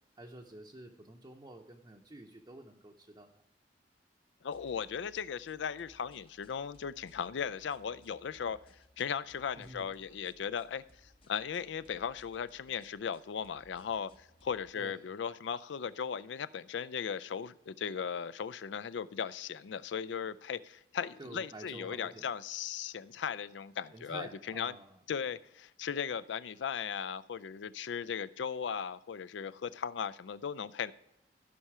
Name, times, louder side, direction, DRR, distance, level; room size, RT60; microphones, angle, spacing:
voice 1, 0.2-3.4 9.6-9.9 14.7-15.0 21.2-22.3 23.9-25.0, right 1 dB, 25° right, 0 dB, 0.7 m, -49 dB
voice 2, 4.4-8.6 9.0-24.7 25.1-30.9, left 7 dB, 75° left, 16 dB, 0.4 m, -37 dB
sound 1, 4.5-14.7, left 1 dB, 30° left, 0.7 m, -64 dB
14.5 x 5.6 x 4.8 m, 0.84 s
head